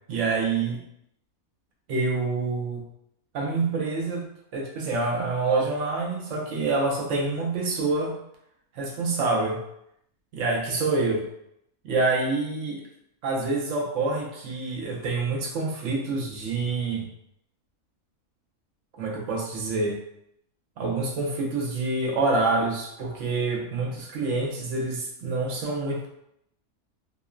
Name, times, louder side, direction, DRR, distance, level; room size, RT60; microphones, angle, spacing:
voice 1, 0.1-0.8 1.9-2.8 3.3-4.3 4.5-8.2 8.7-9.6 10.3-11.3 11.8-12.8 13.2-17.1 18.9-20.0 20.8-26.1, right 3 dB, 65° right, -2 dB, 0.8 m, -27 dB
3.0 x 2.0 x 2.3 m, 0.76 s
omnidirectional pair, 1.5 m